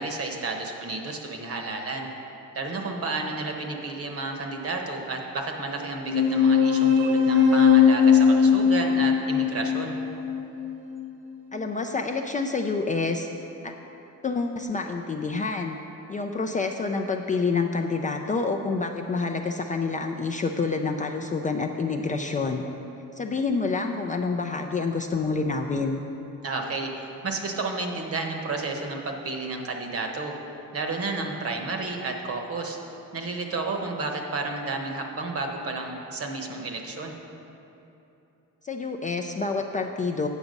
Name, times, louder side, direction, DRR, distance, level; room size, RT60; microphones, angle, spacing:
voice 1, 0.0-2.1 2.5-9.9 26.4-30.3 30.7-32.8 33.1-37.1, right 3 dB, 45° right, 3 dB, 1.0 m, -31 dB
sound 1, 6.0-11.0, left 6 dB, 70° right, 1.2 m, -20 dB
voice 2, 11.5-13.3 13.6-13.7 14.2-15.8 16.1-22.7 23.2-26.0 38.6-40.3, left 4 dB, 25° left, 3 dB, 0.3 m, -28 dB
8.2 x 7.0 x 5.2 m, 2.9 s
cardioid pair, 125°, 32 cm